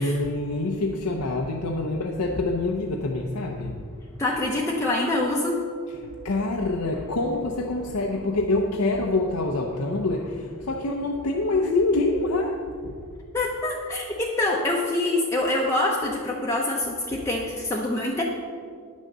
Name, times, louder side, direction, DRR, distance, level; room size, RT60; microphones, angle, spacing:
voice 1, 0.0-3.8 6.0-12.9, left 2 dB, 80° left, 1 dB, 0.7 m, -26 dB
voice 2, 4.2-5.6 13.3-18.2, left 2 dB, 10° left, -3 dB, 0.7 m, -25 dB
10.0 x 6.3 x 6.7 m, 2.1 s
head